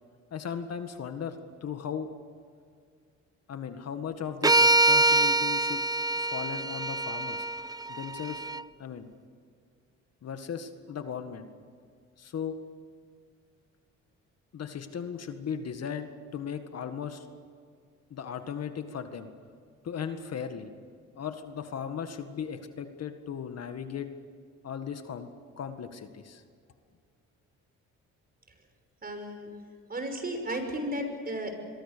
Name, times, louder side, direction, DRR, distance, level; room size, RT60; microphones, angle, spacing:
voice 1, 0.3-2.1 3.5-5.8 6.1-7.5 7.9-8.4 8.8-9.1 10.2-11.5 12.2-12.6 14.5-17.3 18.1-19.3 19.8-20.7 21.2-24.1 24.6-25.3 25.6-26.4, left 7 dB, 55° left, 8 dB, 1.8 m, -37 dB
sound 1, 4.4-8.6, right 2 dB, 15° right, 0.5 m, -25 dB
voice 2, 29.0-29.5 29.9-31.6, equal, 30° right, 5 dB, 5.9 m, -34 dB
26.0 x 23.0 x 6.9 m, 2.1 s
cardioid pair, 90°, 30 cm